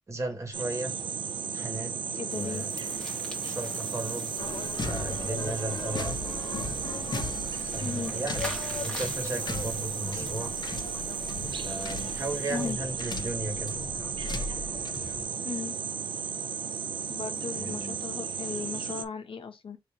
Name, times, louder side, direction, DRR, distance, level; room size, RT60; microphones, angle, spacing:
voice 1, 0.1-0.9 1.5-1.9 2.3-2.7 3.4-4.3 4.7-6.2 7.5-8.5 8.8-10.5 11.5-13.7 17.5-18.1, right 2 dB, 30° right, 1.5 m, -35 dB
sound 1, 0.5-19.1, right 6 dB, 60° right, 0.5 m, -34 dB
voice 2, 2.1-2.7 7.8-8.1 12.5-12.8 15.4-15.8 17.1-19.8, left 5 dB, 75° left, 0.9 m, -36 dB
sound 2, 2.3-12.7, left 1 dB, 10° left, 1.7 m, -43 dB
sound 3, 4.4-15.2, left 3 dB, 50° left, 1.1 m, -38 dB
3.6 x 2.8 x 4.4 m
wide cardioid pair, 125°, 9 cm